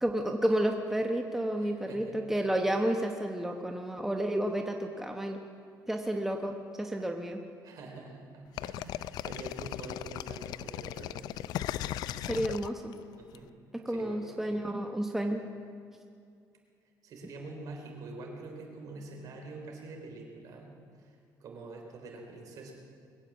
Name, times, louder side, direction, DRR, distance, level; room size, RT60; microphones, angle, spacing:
voice 1, 0.0-5.4 5.9-7.4 12.2-12.9 13.8-15.4, right 1 dB, 5° right, 3 dB, 1.0 m, -31 dB
voice 2, 1.6-2.2 7.6-11.3 13.2-13.5 13.9-14.6 17.0-20.7 21.0-21.1 21.4-22.7, right 3 dB, 60° right, 1 dB, 3.8 m, -45 dB
sound 1, 8.6-13.4, left 13 dB, 75° left, 0.4 m, -37 dB
22.0 x 8.7 x 7.3 m, 2.3 s
cardioid pair, 115°, 7 cm